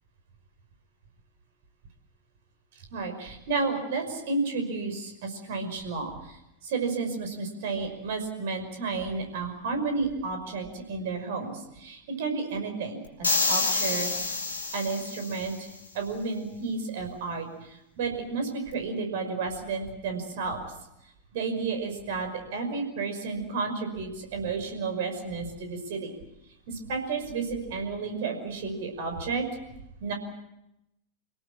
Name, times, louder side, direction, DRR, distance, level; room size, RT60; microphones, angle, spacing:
voice 1, 2.9-14.1 14.7-20.7 21.3-26.1 26.7-29.5 30.0-30.1, right 4 dB, 55° right, 5 dB, 5.7 m, -32 dB
sound 1, 13.2-15.5, left 3 dB, 75° left, 3.2 m, -28 dB
26.5 x 17.5 x 8.7 m, 0.87 s
figure-of-eight pair, 90°, 0 cm